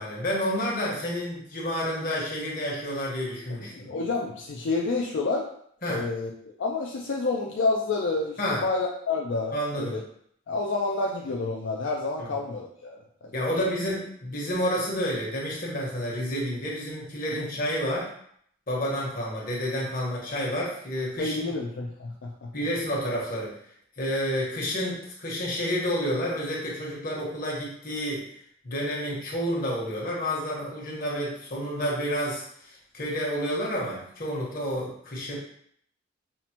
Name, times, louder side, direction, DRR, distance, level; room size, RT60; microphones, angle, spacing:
voice 1, 0.0-3.9 5.8-6.0 8.4-8.6 9.5-10.0 12.2-12.3 13.3-18.1 18.7-21.5 22.5-23.6 24.0-28.2 28.6-35.4, equal, 50° left, -4 dB, 1.2 m, -30 dB
voice 2, 3.6-5.5 5.9-6.3 6.6-10.0 10.5-13.7 17.3-17.4 21.2-22.5, left 3 dB, 70° left, 0 dB, 0.4 m, -29 dB
5.6 x 2.1 x 2.9 m, 0.67 s
head